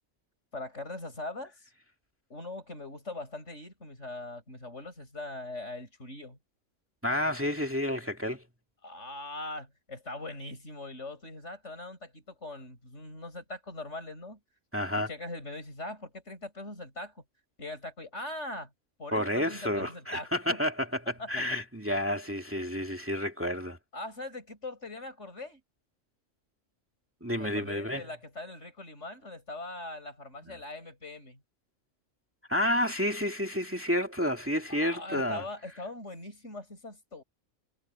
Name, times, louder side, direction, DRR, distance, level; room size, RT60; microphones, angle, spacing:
voice 1, 0.5-1.7 2.3-6.4 8.8-14.4 14.9-17.2 17.6-18.7 19.0-20.6 21.2-21.3 23.9-25.6 27.3-31.4 34.7-37.2, left 2 dB, 60° left, 7.8 m, -41 dB
voice 2, 7.0-8.4 14.7-15.1 19.1-23.8 27.2-28.0 30.4-30.6 32.5-35.4, left 1 dB, 10° right, 2.2 m, -30 dB
omnidirectional pair, 1.4 m